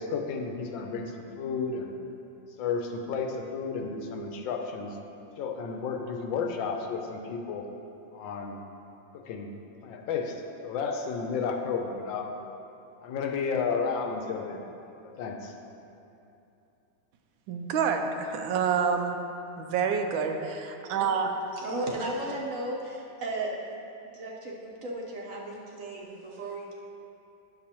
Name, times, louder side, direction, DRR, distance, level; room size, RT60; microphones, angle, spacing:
voice 1, 0.0-1.9 2.6-5.0 5.4-7.6 8.1-8.6 9.1-9.5 9.8-12.3 13.0-14.6 15.2-15.5, left 5 dB, 85° left, 3 dB, 1.4 m, -32 dB
voice 2, 17.5-19.2 19.6-21.3, right 6 dB, 90° right, 5 dB, 1.4 m, -28 dB
voice 3, 21.5-23.5 24.1-26.7, right 2 dB, 55° right, -3 dB, 1.0 m, -35 dB
10.5 x 6.8 x 2.9 m, 2.8 s
omnidirectional pair, 2.1 m